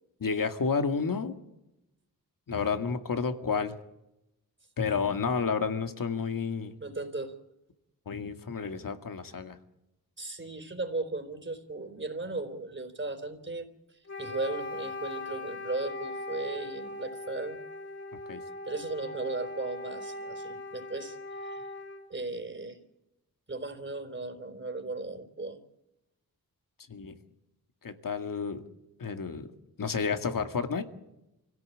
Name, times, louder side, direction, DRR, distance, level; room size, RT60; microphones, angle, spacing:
voice 1, 0.2-1.3 2.5-3.8 4.8-6.7 8.1-9.6 18.3-18.4 26.9-27.1 27.8-28.6 29.0-29.5 29.8-30.8, left 5 dB, 65° left, 7 dB, 2.2 m, -30 dB
voice 2, 6.8-7.3 10.2-13.7 14.2-17.6 18.7-21.2 21.4-21.6 22.1-22.8 23.5-25.6, right 3 dB, 30° right, 6 dB, 4.1 m, -36 dB
Wind instrument woodwind instrument, 14.1-22.1, left 2 dB, 40° left, 5.1 m, -40 dB
25.0 x 17.0 x 8.7 m, 0.90 s
cardioid pair, 50°, 37 cm